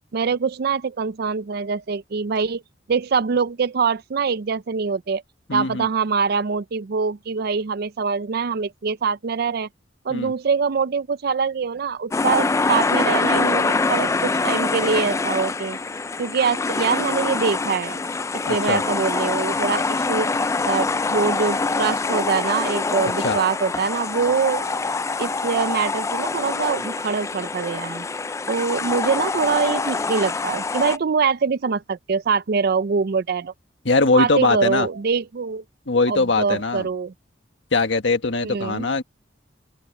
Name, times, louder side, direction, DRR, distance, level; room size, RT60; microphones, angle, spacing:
voice 1, 0.1-2.6 2.9-5.2 5.5-9.7 10.0-15.8 16.2-18.0 18.5-20.3 20.6-24.7 25.2-28.1 28.5-33.5 34.1-35.6 36.1-37.1 38.4-38.9, right 5 dB, 55° right, 0.5 m, -24 dB
voice 2, 5.5-5.9 10.1-10.3 18.5-18.8 23.2-23.4 33.8-34.9 35.9-36.9 37.7-39.0, left 3 dB, 75° left, 1.6 m, -21 dB
sound 1, 12.1-31.0, left 3 dB, 15° left, 0.3 m, -24 dB
open air
head